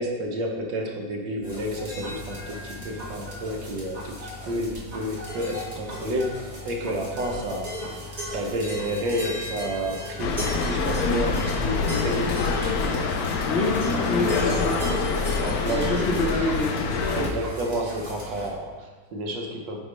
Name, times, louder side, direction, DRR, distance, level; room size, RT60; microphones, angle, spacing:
voice 1, 0.0-8.0 8.3-12.4 13.9-14.6 15.4-16.1 17.1-19.8, equal, 70° right, 1 dB, 1.5 m, -30 dB
sound 1, 1.4-18.5, equal, 20° right, 1.4 m, -36 dB
sound 2, 10.2-17.3, left 4 dB, 80° left, 0.8 m, -26 dB
voice 2, 13.5-14.8 15.6-16.8 17.1-17.3, left 2 dB, 50° left, -5 dB, 0.7 m, -27 dB
8.3 x 5.1 x 3.2 m, 1.3 s
omnidirectional pair, 2.2 m